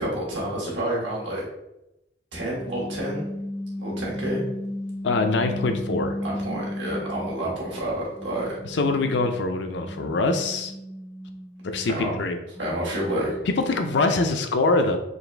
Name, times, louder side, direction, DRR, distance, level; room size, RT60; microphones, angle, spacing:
voice 1, 0.0-1.4 2.3-3.2 3.8-4.4 6.2-8.6 11.9-12.1 12.6-13.3, right 1 dB, 80° right, -4 dB, 1.5 m, -29 dB
sound 1, 2.5-7.8 8.2-14.4, left 1 dB, 10° left, 0.5 m, -35 dB
voice 2, 5.0-6.2 8.7-10.7 11.6-12.4 13.5-15.0, left 3 dB, 65° left, 6 dB, 0.4 m, -24 dB
4.0 x 2.5 x 3.3 m, 0.89 s
head